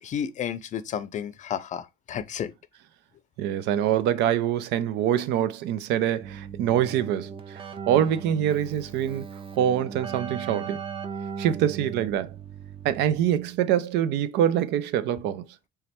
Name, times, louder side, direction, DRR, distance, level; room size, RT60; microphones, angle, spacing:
voice 1, 0.0-2.5, left 8 dB, 45° left, 0.5 m, -32 dB
voice 2, 3.4-9.2 9.5-10.8 11.4-12.3 12.8-15.4, right 10 dB, 90° right, 0.5 m, -25 dB
Keyboard (musical), 6.2-13.5, right 7 dB, 30° right, 0.7 m, -38 dB
3.5 x 3.1 x 4.2 m
cardioid pair, 110°, 17 cm